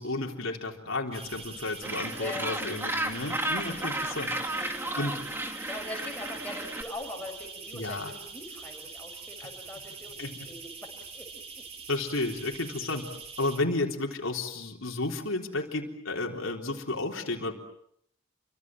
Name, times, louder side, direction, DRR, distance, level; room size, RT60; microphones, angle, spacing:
voice 1, 0.0-4.3 4.6-5.2 7.7-8.1 10.2-10.5 11.9-13.1 13.4-17.5, left 2 dB, 75° left, 1 dB, 3.9 m, -32 dB
sound 1, 1.1-13.6, right 5 dB, 30° right, 3.3 m, -44 dB
Gull seagull, 1.8-6.8, right 1 dB, 10° right, 2.4 m, -33 dB
voice 2, 2.2-2.9 3.7-5.2 5.7-11.6, left 1 dB, 5° left, 0 dB, 6.8 m, -42 dB
29.5 x 25.0 x 7.7 m, 0.70 s
head